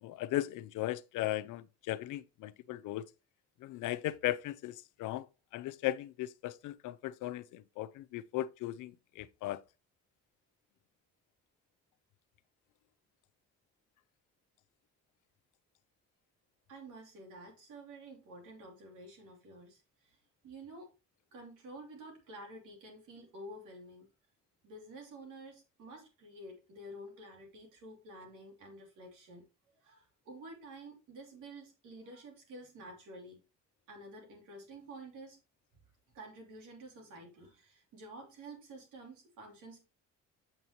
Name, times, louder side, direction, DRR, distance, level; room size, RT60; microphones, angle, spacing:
voice 1, 0.0-3.1 3.6-5.3 5.5-9.6, left 14 dB, 90° left, 0.6 m, -37 dB
voice 2, 16.7-20.2 20.4-20.9 21.3-24.1 24.6-33.4 33.9-35.4 36.1-39.9, right 1 dB, 90° right, 3.0 m, -50 dB
7.8 x 5.5 x 3.0 m
cardioid pair, 90°, 30 cm